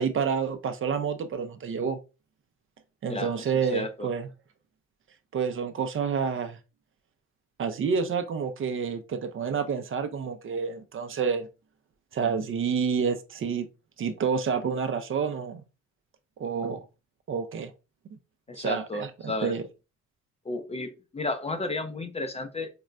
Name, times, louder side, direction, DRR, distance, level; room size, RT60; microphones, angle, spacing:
voice 1, 0.0-2.0 3.0-4.3 5.3-6.6 7.6-11.5 12.1-13.7 14.0-15.6 16.4-16.8 17.3-17.7 18.6-19.6, right 6 dB, 45° right, 0.5 m, -29 dB
voice 2, 3.7-4.1 18.5-19.5 20.5-22.7, left 2 dB, 20° left, 0.5 m, -32 dB
4.4 x 2.1 x 2.4 m
cardioid pair, 90°, 30 cm